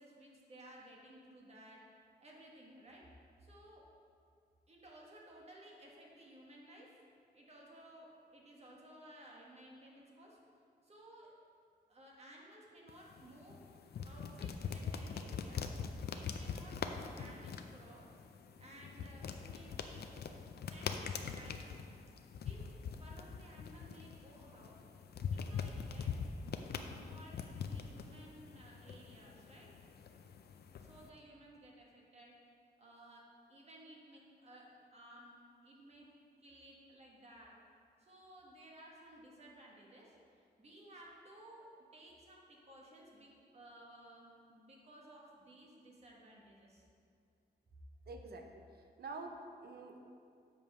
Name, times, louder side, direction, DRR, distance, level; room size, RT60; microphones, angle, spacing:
voice 1, 0.0-1.8 2.2-3.0 3.4-3.8 4.7-6.9 7.3-10.4 10.8-11.3 11.9-13.7 14.0-15.7 16.1-18.1 18.6-20.4 20.7-21.8 22.4-24.8 25.3-26.1 26.8-29.7 30.8-32.3 32.8-35.3 35.6-36.1 36.4-37.5 38.0-46.9, right 1 dB, 40° right, -3 dB, 1.5 m, -57 dB
sound 1, 12.9-31.1, left 6 dB, 70° left, 0.5 m, -43 dB
voice 2, 48.1-48.6 49.0-50.1, right 3 dB, 65° right, 4 dB, 0.8 m, -47 dB
7.5 x 5.2 x 5.5 m, 2.3 s
wide cardioid pair, 140°, 17 cm